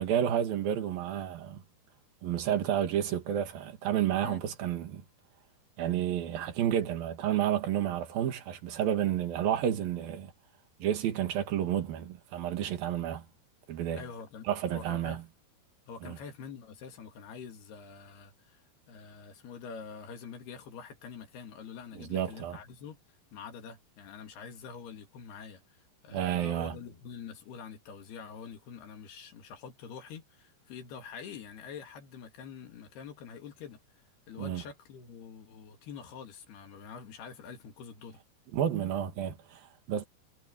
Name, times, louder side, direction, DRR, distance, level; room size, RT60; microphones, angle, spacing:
voice 1, 0.0-1.6 2.2-5.0 5.8-10.3 10.8-13.2 13.7-14.0 14.5-15.2 16.0-16.2 21.9-22.6 26.1-26.8 34.4-34.6 38.5-40.0, right 10 dB, 60° right, 3.2 m, -30 dB
voice 2, 13.9-15.3 15.9-18.6 18.9-23.0 23.3-25.8 26.0-33.8 34.3-38.2, left 6 dB, 65° left, 4.1 m, -46 dB
omnidirectional pair, 5.0 m